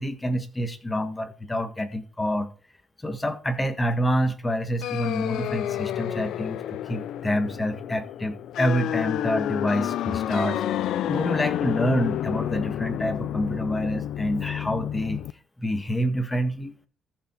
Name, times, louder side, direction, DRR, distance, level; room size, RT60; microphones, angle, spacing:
voice 1, 0.0-2.5 3.0-10.6 11.1-15.2 15.6-16.7, equal, 10° left, 1.6 m, -27 dB
sound 1, 4.8-15.3, left 11 dB, 75° left, 0.6 m, -30 dB
14.5 x 7.1 x 4.5 m
cardioid pair, 130°, 0 cm